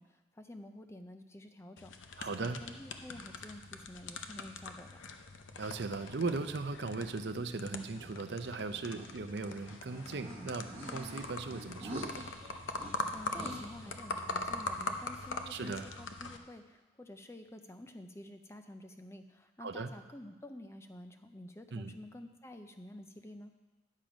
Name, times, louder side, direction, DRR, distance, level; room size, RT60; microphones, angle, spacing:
voice 1, 0.0-4.9 12.9-23.5, left 1 dB, 15° left, 7 dB, 0.5 m, -50 dB
sound 1, 1.8-16.4, left 3 dB, 85° left, 0.7 m, -42 dB
voice 2, 2.2-2.6 5.6-12.3 15.5-15.9 19.6-19.9 21.7-21.9, right 3 dB, 65° right, 10 dB, 0.6 m, -38 dB
sound 2, 7.8-13.9, right 1 dB, 30° right, 1.2 m, -48 dB
10.5 x 7.4 x 5.1 m, 1.2 s
head